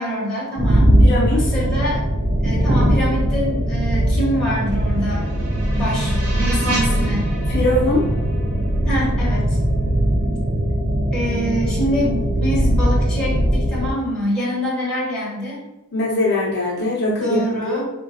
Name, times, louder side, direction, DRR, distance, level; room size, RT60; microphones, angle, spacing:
voice 1, 0.0-0.9 1.3-2.0 2.4-5.3 5.7-7.3 8.9-9.6 11.1-15.6 17.2-17.9, equal, 5° left, -8 dB, 1.1 m, -25 dB
sound 1, 0.6-13.9, right 1 dB, 45° right, 0.4 m, -20 dB
voice 2, 1.0-1.4 7.5-8.0 15.9-17.8, left 2 dB, 50° left, -5 dB, 0.6 m, -21 dB
sound 2, 4.4-9.4, right 1 dB, 75° right, 0.8 m, -32 dB
3.7 x 2.3 x 2.7 m, 0.93 s
head